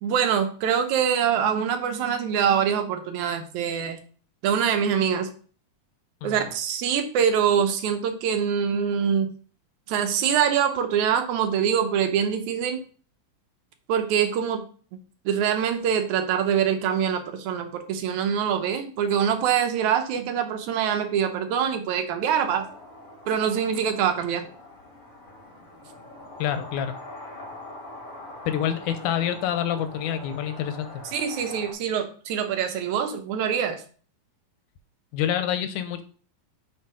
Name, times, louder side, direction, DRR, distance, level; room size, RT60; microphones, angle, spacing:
voice 1, 0.0-4.0 4.4-5.3 6.2-9.3 9.9-12.8 13.9-14.7 15.3-22.7 23.3-24.5 31.1-33.8, right 8 dB, 75° right, 6 dB, 2.1 m, -24 dB
sound 1, 22.4-31.7, left 1 dB, 40° left, 1.2 m, -43 dB
voice 2, 26.4-27.0 28.5-31.0 35.1-36.0, left 10 dB, 85° left, 9 dB, 2.1 m, -27 dB
7.1 x 3.7 x 4.8 m, 0.42 s
omnidirectional pair, 3.5 m